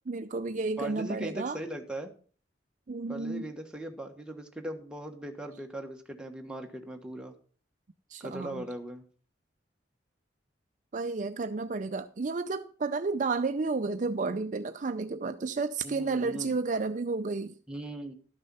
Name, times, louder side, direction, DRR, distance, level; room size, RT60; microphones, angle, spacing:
voice 1, 0.1-1.6 2.9-3.5 8.1-8.6 10.9-17.6, right 3 dB, 45° right, 0.5 m, -31 dB
voice 2, 0.8-2.1 3.1-7.3 8.2-9.0 15.8-16.6 17.7-18.1, right 1 dB, 5° right, 1.4 m, -39 dB
12.5 x 6.8 x 5.5 m
head